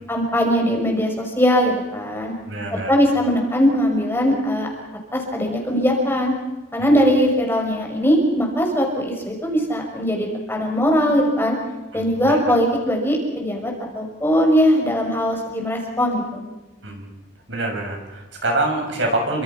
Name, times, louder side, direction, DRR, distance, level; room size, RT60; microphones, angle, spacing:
voice 1, 0.1-2.3 2.7-4.7 5.1-6.4 6.7-11.6 11.9-16.4, equal, 10° left, 1 dB, 5.5 m, -20 dB
voice 2, 2.4-3.0 6.8-6.9 11.9-12.5 16.8-17.0 17.5-19.4, right 2 dB, 65° right, 1 dB, 7.7 m, -25 dB
30.0 x 25.5 x 5.9 m, 1.1 s
head